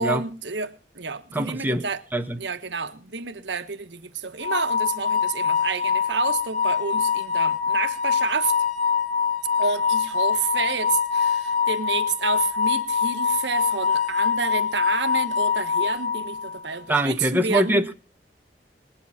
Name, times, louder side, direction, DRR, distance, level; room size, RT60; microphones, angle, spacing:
voice 1, 0.0-2.0 2.4-8.5 9.6-17.8, right 5 dB, 80° right, 1.3 m, -29 dB
voice 2, 1.3-1.8 2.1-2.4 16.9-17.9, right 1 dB, 10° right, 1.4 m, -23 dB
sound 1, 4.4-16.6, left 6 dB, 50° left, 2.8 m, -24 dB
20.5 x 10.5 x 5.8 m
head